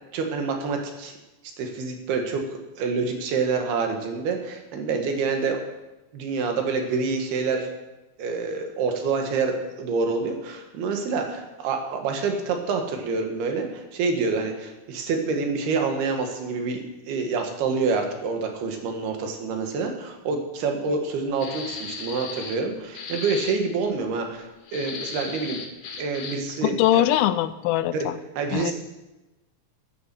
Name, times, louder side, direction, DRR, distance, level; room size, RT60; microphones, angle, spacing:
voice 1, 0.1-1.1 1.6-2.4 2.8-5.6 6.1-7.7 8.2-16.8 17.1-25.6 26.0-27.0 27.9-28.1 28.4-28.7, right 4 dB, 85° right, 3 dB, 3.7 m, -27 dB
sound 1, 21.4-22.6 22.9-23.6 24.7-26.5, left 5 dB, 65° left, 2.7 m, -36 dB
voice 2, 26.6-28.2 28.5-28.7, left 13 dB, 80° left, 14 dB, 2.4 m, -22 dB
12.0 x 9.6 x 7.7 m, 1.1 s
omnidirectional pair, 4.4 m